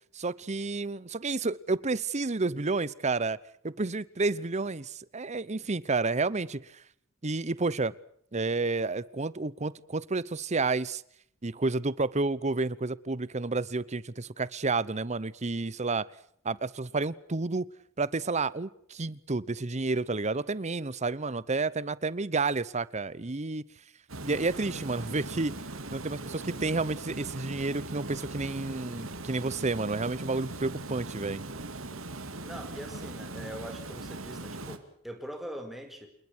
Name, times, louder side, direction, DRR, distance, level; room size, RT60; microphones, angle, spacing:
voice 1, 0.1-3.4 3.6-6.7 7.2-7.9 8.3-11.0 11.4-16.0 16.4-17.7 18.0-23.6 24.2-25.5 25.9-31.4, right 3 dB, 35° right, 20 dB, 0.9 m, -30 dB
Water, 24.1-34.8, right 2 dB, 90° right, 2.6 m, -40 dB
voice 2, 32.4-36.1, equal, ahead, 5 dB, 4.8 m, -42 dB
28.0 x 21.0 x 6.2 m, 0.67 s
head